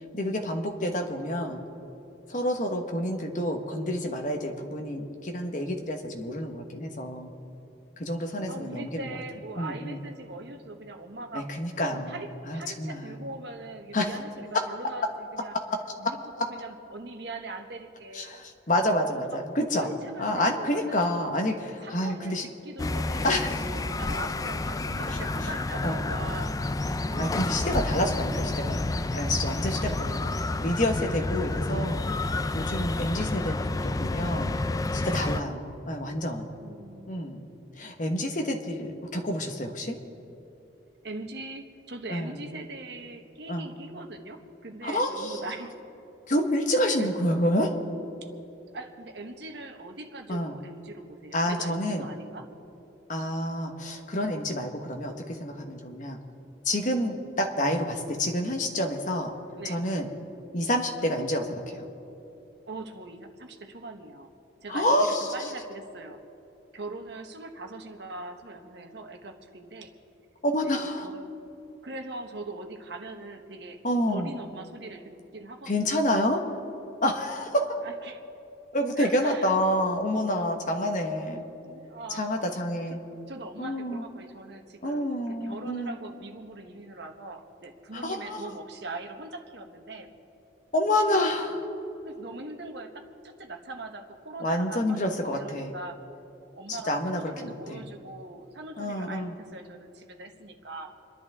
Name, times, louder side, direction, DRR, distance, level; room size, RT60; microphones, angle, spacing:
voice 1, 0.1-1.6 2.3-7.3 8.0-9.1 9.6-10.0 11.3-12.2 12.5-13.2 13.9-14.1 16.3-16.5 18.1-19.9 20.2-22.4 23.2-23.6 25.8-26.0 27.2-28.9 29.1-30.1 30.6-32.1 32.5-34.6 34.9-36.5 37.1-37.5 37.8-40.0 42.1-42.4 43.5-43.7 44.8-45.5 46.3-47.7 50.3-50.5 51.3-52.1 53.1-56.2 56.6-59.3 59.7-60.1 60.5-61.8 64.7-65.5 70.4-71.0 73.8-74.3 75.7-76.4 77.0-77.8 78.7-81.4 82.1-83.0 83.6-84.0 84.8-85.9 88.0-88.4 90.7-91.7 94.4-95.7 96.7-97.8 98.8-99.3, left 1 dB, 45° left, 4 dB, 1.3 m, -28 dB
voice 2, 8.5-11.5 12.0-15.6 16.0-18.4 19.1-19.4 19.7-21.1 21.8-23.3 23.7-28.0 29.5-30.3 36.6-37.1 41.0-45.7 47.0-47.1 48.2-48.3 48.7-52.5 59.5-59.8 62.7-64.3 64.6-66.2 66.7-69.9 70.6-71.3 71.8-73.8 74.1-76.0 77.8-78.2 79.0-79.6 81.6-82.5 82.9-90.1 92.0-96.0 96.5-100.9, right 2 dB, 65° right, 4 dB, 1.3 m, -41 dB
sound 1, 22.8-35.4, left 2 dB, 20° left, 0.3 m, -29 dB
29.0 x 11.0 x 3.6 m, 3.0 s
head